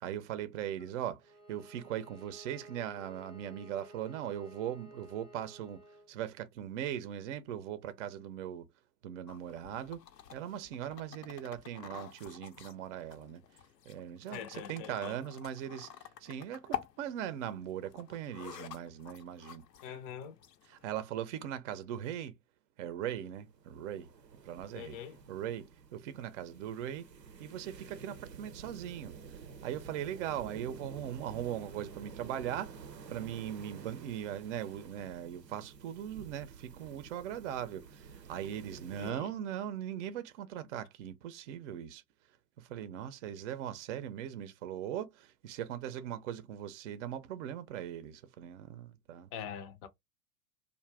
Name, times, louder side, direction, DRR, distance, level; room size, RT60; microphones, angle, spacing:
voice 1, 0.0-5.8 6.1-8.7 9.0-10.0 10.3-13.4 13.9-15.9 16.2-19.6 20.7-22.3 22.8-24.1 24.4-25.0 25.3-27.1 27.4-29.1 29.6-32.8 33.1-42.0 42.6-49.3, right 10 dB, 50° right, 0.6 m, -39 dB
Bowed string instrument, 1.2-6.1, right 1 dB, 10° right, 0.7 m, -54 dB
sound 1, 9.3-20.9, left 10 dB, 80° left, 0.6 m, -48 dB
voice 2, 14.3-15.2 19.8-20.4 24.7-25.2 39.0-39.3 49.3-49.9, left 8 dB, 35° left, 0.5 m, -43 dB
sound 2, 23.1-39.1, right 5 dB, 90° right, 0.6 m, -51 dB
2.5 x 2.1 x 3.2 m
figure-of-eight pair, 95°, 49 cm